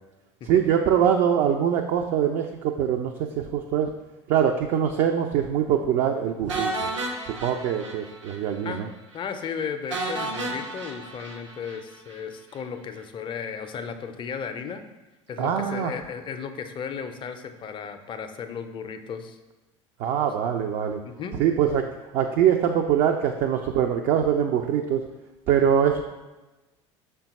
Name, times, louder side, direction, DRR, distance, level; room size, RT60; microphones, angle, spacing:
voice 1, 0.4-3.9 4.3-6.9 7.2-8.9 15.4-15.9 20.0-21.0 21.4-25.0 25.5-26.0, right 9 dB, 50° right, 4 dB, 0.4 m, -23 dB
sound 1, 6.5-8.4 8.7-8.8 9.1-9.2 9.9-12.2, right 2 dB, 85° right, 0.7 m, -32 dB
voice 2, 9.1-14.8 15.3-19.4 21.0-21.4, left 6 dB, 30° left, 8 dB, 0.4 m, -35 dB
5.5 x 2.2 x 4.0 m, 1.1 s
hypercardioid pair, 70°, 16 cm